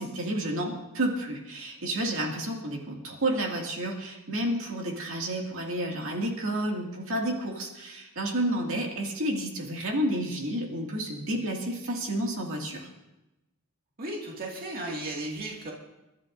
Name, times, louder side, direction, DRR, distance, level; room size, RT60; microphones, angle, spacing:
voice 1, 0.0-12.9, right 1 dB, 65° right, 0 dB, 2.3 m, -30 dB
voice 2, 14.0-15.7, right 1 dB, 40° right, -2 dB, 2.2 m, -35 dB
27.0 x 12.5 x 2.6 m, 0.97 s
head